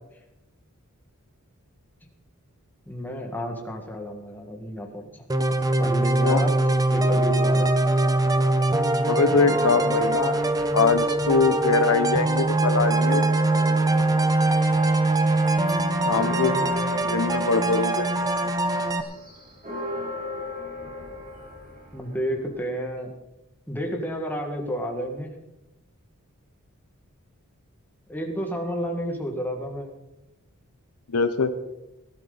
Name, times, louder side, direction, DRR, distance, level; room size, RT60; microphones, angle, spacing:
voice 1, 2.9-5.3 5.8-6.6 6.9-7.8 9.2-10.0 15.9-16.9 21.9-23.1 23.7-25.4 28.1-30.0, equal, 10° left, 2 dB, 1.9 m, -31 dB
sound 1, 5.3-19.0, right 2 dB, 15° right, 0.8 m, -22 dB
voice 2, 9.1-10.4 10.7-13.2 16.1-16.6 17.1-18.1 31.1-31.5, left 4 dB, 75° left, 10 dB, 0.8 m, -23 dB
sound 2, 9.3-11.7 12.1-22.6, equal, 35° right, 5.1 m, -37 dB
Trumpet, 13.8-18.5, right 3 dB, 60° right, 5.1 m, -42 dB
18.0 x 11.5 x 4.1 m, 0.93 s
head